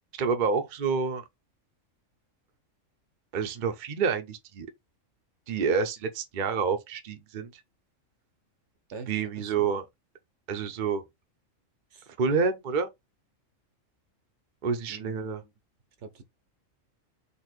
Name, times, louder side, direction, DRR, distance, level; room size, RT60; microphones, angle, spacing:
voice 1, 0.2-1.2 3.3-4.7 5.5-7.5 9.1-9.8 10.5-11.0 12.2-12.9 14.6-15.4, right 5 dB, 45° right, 0.8 m, -28 dB
voice 2, 8.9-9.7 11.9-12.1 14.9-15.5 16.0-16.2, right 4 dB, 65° right, 1.1 m, -45 dB
4.2 x 2.9 x 4.4 m
omnidirectional pair, 1.4 m